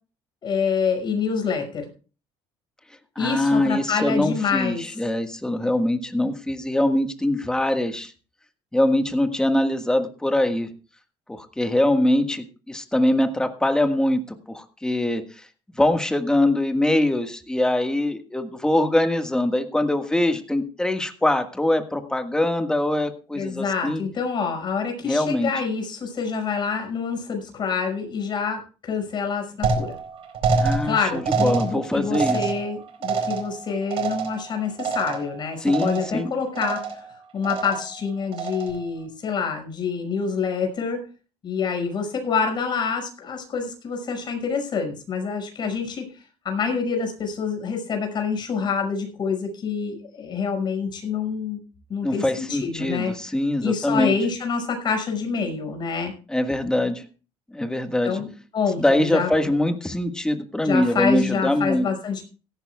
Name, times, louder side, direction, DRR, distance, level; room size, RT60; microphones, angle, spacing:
voice 1, 0.4-1.9 3.2-4.8 23.3-30.0 30.8-37.0 37.3-41.0 41.4-46.1 46.4-51.6 51.9-53.1 53.6-56.1 58.0-59.5 60.6-62.2, left 5 dB, 45° left, 4 dB, 5.7 m, -27 dB
voice 2, 3.1-8.1 8.7-10.7 11.3-14.2 14.5-15.5 15.8-24.0 25.0-25.5 30.6-32.4 35.6-36.3 52.0-54.1 56.3-57.0 57.5-58.2 58.8-61.9, left 1 dB, 5° left, 7 dB, 1.6 m, -23 dB
sound 1, 29.6-35.4 35.7-36.2 36.6-37.1 37.4-38.0 38.3-38.9, right 4 dB, 60° right, 4.1 m, -27 dB
17.5 x 14.0 x 2.3 m, 0.35 s
cardioid pair, 120°, 11 cm